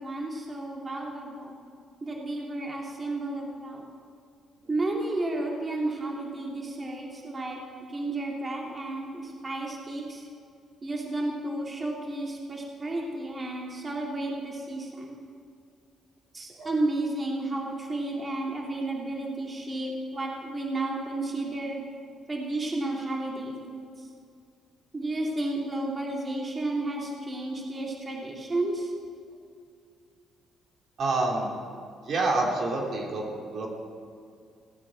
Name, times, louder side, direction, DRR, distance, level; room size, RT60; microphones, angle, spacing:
voice 1, 0.0-1.5 2.0-3.9 4.7-7.6 7.9-10.3 10.8-15.2 16.3-21.8 22.3-24.1 24.9-28.9, right 2 dB, 30° right, -1 dB, 2.8 m, -32 dB
voice 2, 31.0-31.5 32.0-33.7, right 2 dB, 60° right, -1 dB, 3.1 m, -27 dB
17.0 x 9.2 x 7.5 m, 2.3 s
cardioid pair, 90°, 0 cm